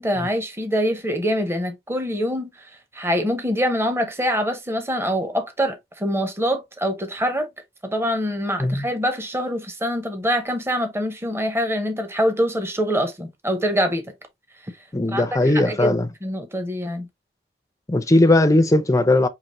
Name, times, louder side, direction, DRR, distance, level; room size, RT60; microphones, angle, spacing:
voice 1, 0.0-2.5 2.9-7.5 7.8-14.1 15.1-15.2 15.5-16.0 16.2-17.1, equal, 15° right, 0.8 m, -24 dB
voice 2, 14.9-16.1 17.9-19.3, left 2 dB, 20° left, 0.5 m, -18 dB
5.8 x 2.9 x 3.0 m
head